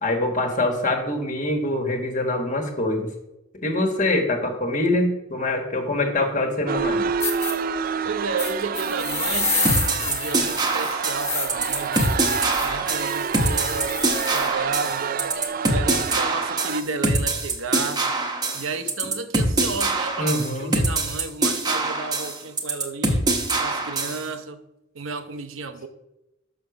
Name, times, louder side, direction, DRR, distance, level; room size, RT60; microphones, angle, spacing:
voice 1, 0.0-3.1 3.5-7.1 20.2-20.8, left 2 dB, 40° left, 3 dB, 1.4 m, -24 dB
sound 1, 6.7-16.8, right 6 dB, 45° right, 0.4 m, -28 dB
sound 2, 6.8-6.9 7.2-7.5 8.4-14.5, left 3 dB, 15° left, 1.1 m, -29 dB
voice 2, 8.0-12.2 12.6-14.0 14.3-15.2 15.7-18.0 18.5-23.2 23.6-24.6 24.9-25.9, right 4 dB, 80° right, 7 dB, 0.8 m, -32 dB
sound 3, 9.6-24.2, right 2 dB, 20° right, 1.0 m, -24 dB
6.3 x 5.9 x 5.9 m, 0.93 s
head